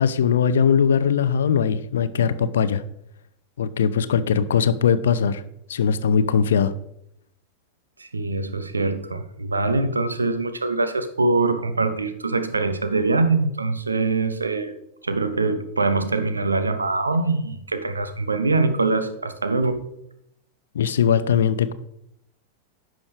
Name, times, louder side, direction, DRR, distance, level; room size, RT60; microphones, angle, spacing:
voice 1, 0.0-2.8 3.6-5.4 5.7-6.7 20.7-21.7, left 7 dB, 65° left, 14 dB, 0.5 m, -20 dB
voice 2, 8.0-14.7 15.0-19.8, right 3 dB, 80° right, 10 dB, 0.8 m, -23 dB
10.5 x 6.3 x 3.3 m, 0.77 s
figure-of-eight pair, 90°, 0 cm